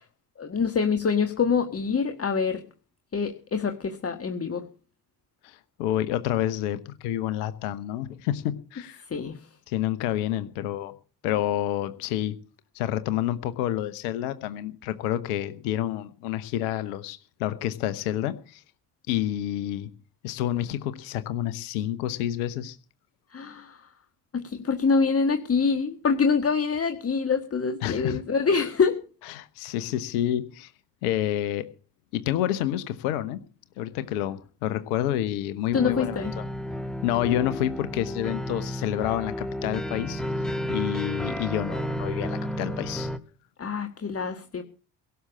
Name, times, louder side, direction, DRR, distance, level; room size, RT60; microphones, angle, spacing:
voice 1, 0.4-2.6 3.1-4.7 9.1-9.5 23.3-23.9 24.3-29.0 35.7-36.3 43.6-44.6, left 5 dB, 30° left, 8 dB, 1.6 m, -25 dB
voice 2, 5.4-9.0 9.7-10.9 11.2-12.3 12.7-18.6 19.1-19.9 20.2-22.8 27.8-28.2 29.3-30.7 31.0-31.7 32.1-33.4 33.8-36.4 37.0-40.2 40.7-43.1, left 12 dB, 70° left, 13 dB, 1.1 m, -29 dB
sound 1, 35.7-43.2, equal, ahead, 1.6 m, -32 dB
17.5 x 6.9 x 8.7 m, 0.38 s
figure-of-eight pair, 45°, 46 cm